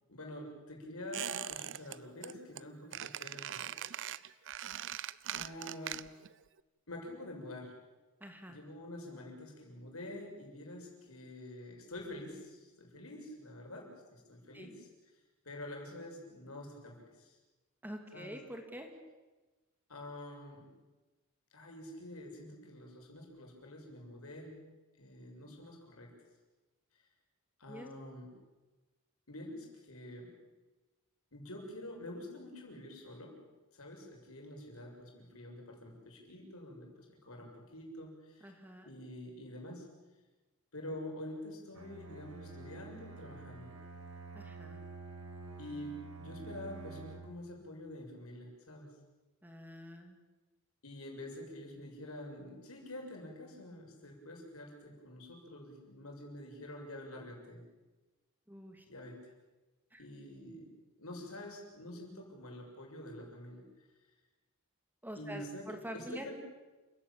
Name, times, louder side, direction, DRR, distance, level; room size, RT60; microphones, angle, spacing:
voice 1, 0.1-3.7 4.5-4.7 5.3-6.0 6.9-7.7 8.5-14.9 15.5-17.4 18.1-18.3 19.9-20.7 21.5-24.6 25.0-26.1 27.6-28.3 29.3-30.3 31.3-33.3 33.7-36.9 37.2-38.5 38.9-39.9 40.7-43.7 45.6-48.9 50.8-57.6 58.8-59.2 60.0-60.7 61.0-63.6 65.2-66.4, left 1 dB, 75° left, 1 dB, 6.9 m, -47 dB
Squeak, 1.1-2.0 2.2-2.6 2.9-6.3 6.6-6.7, right 11 dB, 60° right, 0.7 m, -41 dB
voice 2, 8.2-8.6 14.5-14.7 17.8-18.9 27.7-27.9 38.4-38.9 44.3-44.8 49.4-50.2 58.5-58.8 59.9-60.0 65.0-66.4, equal, 10° right, 4 dB, 2.7 m, -46 dB
Bowed string instrument, 41.7-47.4, right 3 dB, 75° right, 5.1 m, -48 dB
29.0 x 16.5 x 8.9 m, 1.2 s
head